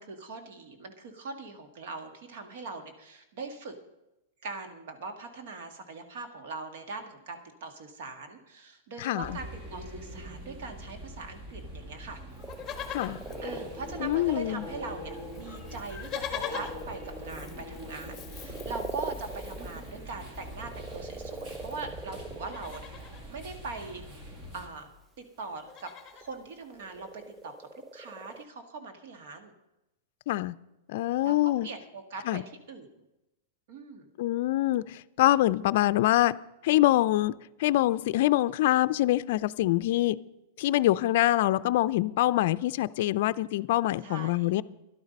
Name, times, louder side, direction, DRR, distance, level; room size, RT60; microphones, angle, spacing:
voice 1, 0.0-3.7 4.4-12.2 13.4-22.8 23.3-24.0 24.5-24.9 25.2-27.7 27.9-29.5 31.2-31.4 31.6-32.4 32.7-32.9 33.7-34.1 44.0-44.5, right 4 dB, 60° right, 6 dB, 1.9 m, -41 dB
voice 2, 9.0-9.4 12.9-13.2 14.0-14.7 30.3-30.5 30.9-31.7 32.3-32.4 34.2-36.3 36.6-37.3 37.6-40.2 40.6-44.6, left 15 dB, 55° left, 15 dB, 0.4 m, -25 dB
sound 1, 9.2-24.7, equal, 30° right, 2.0 m, -43 dB
Livestock farm animals working animals, 12.4-14.4 14.6-14.7 15.0-21.9 22.3-23.3 24.5-24.6 24.7-25.0 25.4-26.3 26.9-27.0, left 8 dB, 15° left, 1.4 m, -43 dB
sound 2, 12.4-15.8 16.3-22.7 23.8-23.9 26.1-28.4, right 4 dB, 15° right, 0.4 m, -43 dB
12.0 x 11.5 x 5.3 m, 0.93 s
supercardioid pair, 150°, 0 cm